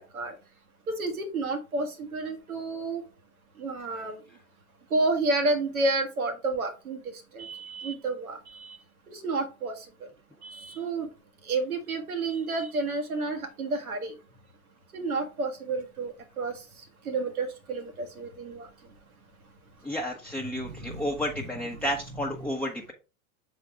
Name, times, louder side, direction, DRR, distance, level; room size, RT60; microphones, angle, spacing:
voice 1, 0.9-3.0 3.6-4.2 4.9-8.8 9.1-9.8 10.4-11.1 11.4-14.2 14.9-18.7 20.5-21.1 21.8-21.9 22.4-22.5, right 3 dB, 85° right, 5 dB, 1.4 m, -31 dB
voice 2, 19.8-22.9, equal, 5° left, 0 dB, 0.8 m, -31 dB
6.7 x 4.0 x 3.6 m, 0.31 s
hypercardioid pair, 90°, 42 cm